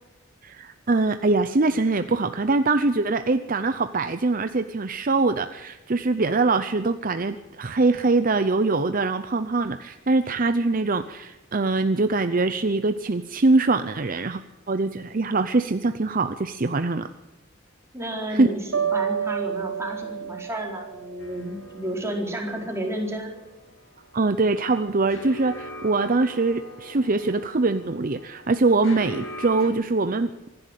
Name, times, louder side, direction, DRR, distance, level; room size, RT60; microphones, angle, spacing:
voice 1, 0.4-14.4 14.7-17.1 18.3-18.5 24.1-30.5, right 3 dB, 45° right, 10 dB, 0.7 m, -23 dB
voice 2, 17.9-23.3, right 1 dB, 15° right, 0 dB, 4.2 m, -31 dB
sound 1, 18.7-21.8, right 7 dB, 85° right, 1.9 m, -30 dB
sound 2, 21.2-29.7, left 1 dB, 70° left, 5.7 m, -42 dB
25.5 x 11.5 x 9.1 m, 1.0 s
head